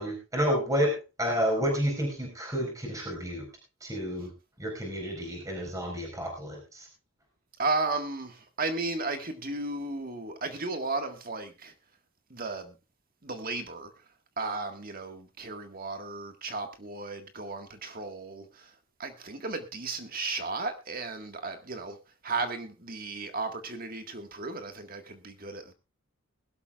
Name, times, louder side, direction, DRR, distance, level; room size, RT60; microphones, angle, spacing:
voice 1, 0.0-3.5 3.8-4.3 4.6-6.9, equal, 15° right, 4.8 m, -30 dB
voice 2, 7.6-11.7 12.3-12.8 13.2-13.9 14.4-18.7 19.0-22.0 22.2-25.7, right 3 dB, 45° right, 1.8 m, -34 dB
21.0 x 12.5 x 2.4 m
head